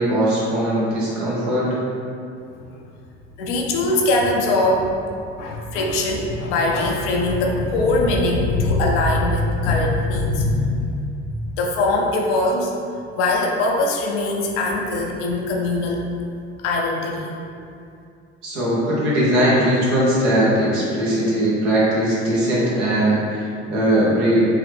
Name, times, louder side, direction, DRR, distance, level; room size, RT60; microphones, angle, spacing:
voice 1, 0.0-1.7 18.4-24.5, right 1 dB, 75° right, -7 dB, 1.3 m, -19 dB
voice 2, 3.4-4.9 5.4-11.0 11.5-12.7 13.1-16.1 16.6-17.4, left 2 dB, 75° left, 0 dB, 0.6 m, -21 dB
3.7 x 3.2 x 3.4 m, 2.5 s
hypercardioid pair, 55°, 36 cm